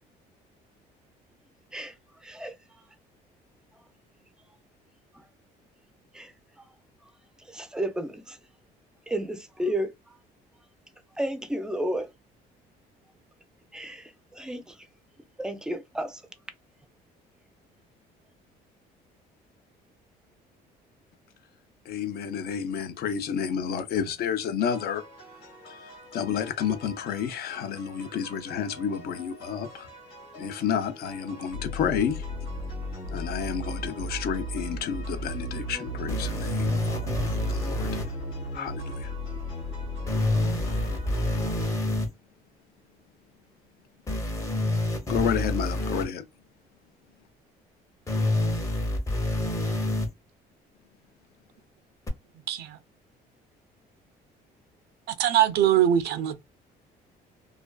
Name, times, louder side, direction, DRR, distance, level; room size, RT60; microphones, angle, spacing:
voice 1, 2.2-2.6 6.1-6.3 7.5-8.4 9.1-10.2 11.2-12.1 13.7-14.8 15.4-16.2, right 1 dB, 5° right, 0.4 m, -32 dB
voice 2, 21.9-25.0 26.1-29.9 30.4-32.2 33.1-37.2 37.5-38.0 38.5-39.1 45.1-46.2, left 8 dB, 65° left, 0.5 m, -30 dB
sound 1, 24.7-41.7, equal, 90° left, 1.3 m, -37 dB
sound 2, 36.1-38.0 40.1-42.1 44.1-46.0 48.1-50.1 52.1-52.2, left 1 dB, 20° left, 0.7 m, -27 dB
voice 3, 52.5-52.8 55.1-56.4, right 11 dB, 75° right, 0.4 m, -22 dB
2.4 x 2.3 x 2.2 m
cardioid pair, 110°, 17 cm